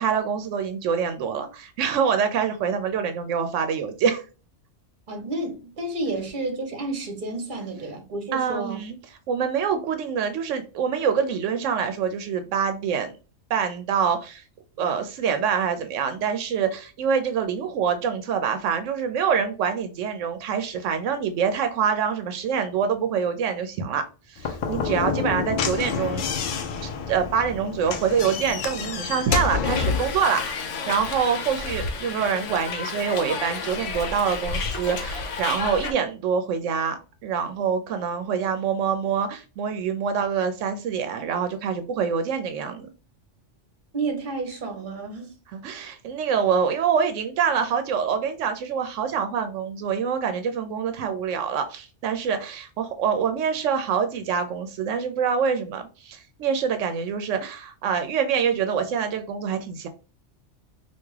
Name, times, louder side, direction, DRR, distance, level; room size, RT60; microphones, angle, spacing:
voice 1, 0.0-4.2 8.3-9.0 9.3-13.1 13.5-14.4 14.8-24.0 24.3-26.5 26.8-42.9 45.5-59.9, right 7 dB, 85° right, 0.9 m, -25 dB
voice 2, 5.1-8.8 43.9-45.4, right 2 dB, 45° right, 1.0 m, -30 dB
Slam / Knock, 24.4-30.2, left 6 dB, 60° left, 0.5 m, -28 dB
Hiss, 29.6-35.9, left 5 dB, 80° left, 1.0 m, -31 dB
3.4 x 2.5 x 3.1 m
omnidirectional pair, 1.2 m